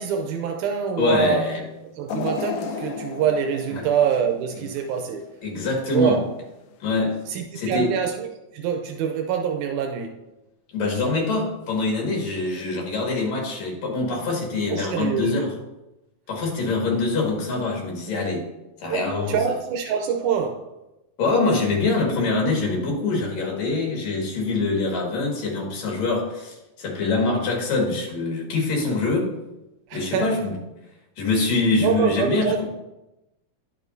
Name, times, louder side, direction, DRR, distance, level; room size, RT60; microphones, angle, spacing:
voice 1, 0.0-1.5 2.0-5.2 5.9-6.2 7.3-8.3 8.5-10.2 14.7-15.5 18.9-20.6 29.9-30.4 31.8-32.6, right 7 dB, 85° right, 4 dB, 2.1 m, -25 dB
voice 2, 1.0-1.6 3.8-3.9 4.6-4.7 5.4-6.2 6.8-7.2 7.5-7.9 10.7-15.6 16.3-18.5 18.8-19.4 21.2-29.3 29.9-30.5 31.2-32.7, left 3 dB, 65° left, -1 dB, 3.0 m, -24 dB
sound 1, 2.1-5.2 5.7-5.8 6.8-6.9, left 5 dB, 85° left, 2.1 m, -33 dB
10.0 x 6.3 x 2.6 m, 0.95 s
omnidirectional pair, 3.6 m